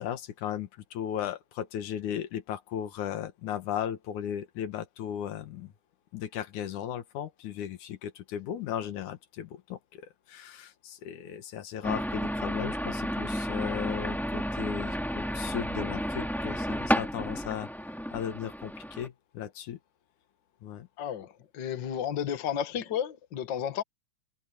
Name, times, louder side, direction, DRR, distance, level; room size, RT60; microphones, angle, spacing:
voice 1, 0.0-5.7 6.1-17.7 18.1-19.8 20.6-20.9, left 10 dB, 85° left, 2.8 m, -36 dB
sound 1, 11.8-19.1, equal, ahead, 2.3 m, -32 dB
voice 2, 21.0-23.8, left 9 dB, 45° left, 1.8 m, -32 dB
omnidirectional pair, 3.4 m